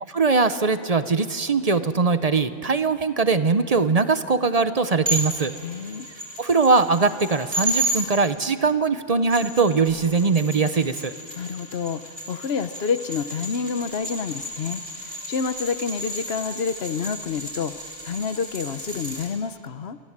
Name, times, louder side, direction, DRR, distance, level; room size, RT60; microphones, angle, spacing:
voice 1, 0.1-5.5 6.4-11.1, right 4 dB, 40° right, 11 dB, 0.9 m, -21 dB
sound 1, 5.1-8.0 9.1-19.3, right 1 dB, 65° right, 5.3 m, -33 dB
voice 2, 5.6-6.1 11.3-12.0 12.3-20.0, left 6 dB, 75° left, 12 dB, 1.1 m, -28 dB
27.0 x 24.0 x 7.4 m, 2.3 s
omnidirectional pair, 1.0 m